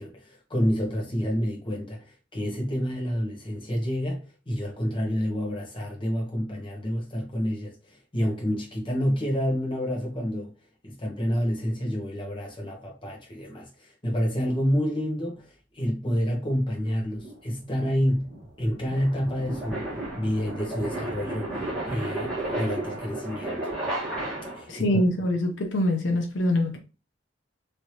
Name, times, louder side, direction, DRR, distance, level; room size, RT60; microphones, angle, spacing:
voice 1, 0.0-10.5 10.8-18.3 18.6-19.9 20.2-23.7 24.5-24.9, equal, 25° left, 1.0 m, -29 dB
sound 1, 17.2-24.8, right 1 dB, ahead, 1.2 m, -33 dB
voice 2, 24.7-26.8, left 1 dB, 75° left, 0.7 m, -24 dB
3.2 x 2.7 x 2.8 m
head